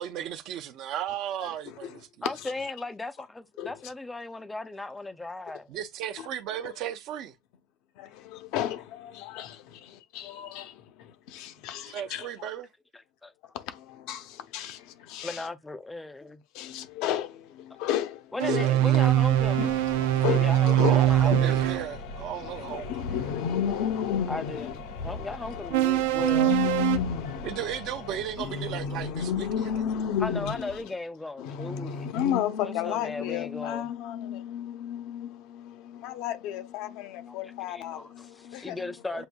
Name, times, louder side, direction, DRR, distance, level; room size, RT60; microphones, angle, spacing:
voice 1, 0.0-2.3 5.7-7.3 11.9-12.7 18.5-19.0 20.7-23.2 27.4-29.5 39.1-39.2, right 10 dB, 45° right, 0.7 m, -35 dB
voice 2, 1.4-2.0 2.2-2.5 3.6-3.8 6.6-6.7 8.0-12.5 13.5-15.5 16.5-19.1 19.5-21.6 22.3-24.8 25.0-25.6 25.9-27.7 28.4-30.9 31.4-39.3, left 9 dB, 60° left, 0.7 m, -33 dB
voice 3, 2.2-5.7 13.2-13.3 15.2-16.4 18.3-19.7 20.3-21.6 24.3-24.7 25.0-26.5 30.2-32.1 32.6-33.9 37.3-37.4 37.7-39.3, left 2 dB, 10° left, 0.5 m, -36 dB
sound 1, 18.4-21.9 25.7-27.0, right 14 dB, 90° right, 0.4 m, -22 dB
sound 2, 19.0-30.8, left 4 dB, 85° left, 1.7 m, -40 dB
7.9 x 2.6 x 2.2 m
cardioid pair, 165°, 0 cm